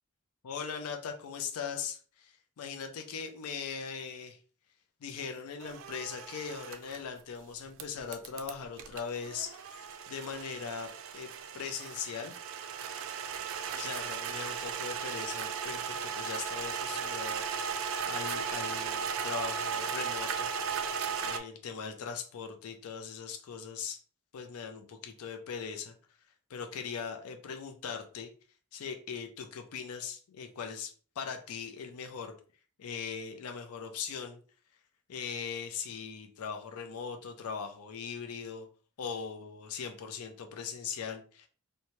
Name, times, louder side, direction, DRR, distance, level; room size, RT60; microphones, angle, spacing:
voice 1, 0.4-4.4 5.0-9.7 10.1-12.3 13.5-20.5 21.2-24.0 24.3-25.9 26.5-28.3 28.7-32.4 32.8-34.4 35.1-38.7 39.0-41.5, left 6 dB, 85° left, 5 dB, 0.4 m, -40 dB
sound 1, 5.6-7.0 7.8-21.4, right 6 dB, 65° right, 0.3 m, -36 dB
2.7 x 2.2 x 2.9 m, 0.40 s
head